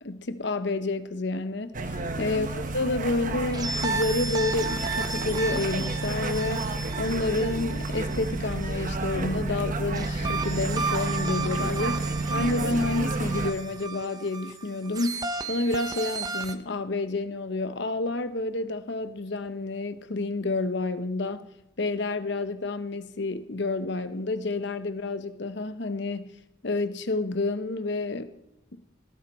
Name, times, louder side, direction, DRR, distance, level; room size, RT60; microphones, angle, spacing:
voice 1, 0.0-2.5 2.7-6.7 7.0-21.5 21.8-26.3 26.6-28.3, left 2 dB, 60° left, 11 dB, 0.9 m, -29 dB
sound 1, 1.7-13.5, right 2 dB, 40° right, 1.0 m, -30 dB
sound 2, 3.5-9.1 9.9-16.5, right 3 dB, 20° right, 0.7 m, -34 dB
19.0 x 14.5 x 4.3 m, 0.86 s
head